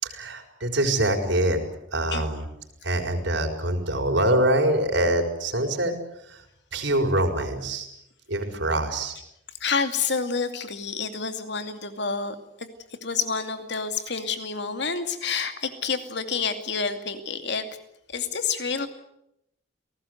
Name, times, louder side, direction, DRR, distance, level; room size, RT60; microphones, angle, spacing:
voice 1, 0.0-1.6 1.9-2.4 2.8-5.9 6.2-6.4 6.7-7.9 8.3-9.2, right 1 dB, 70° right, 5 dB, 4.8 m, -24 dB
voice 2, 9.6-12.7 13.0-17.7 18.1-18.9, left 5 dB, 60° left, 8 dB, 2.6 m, -28 dB
29.5 x 18.5 x 8.1 m, 0.81 s
head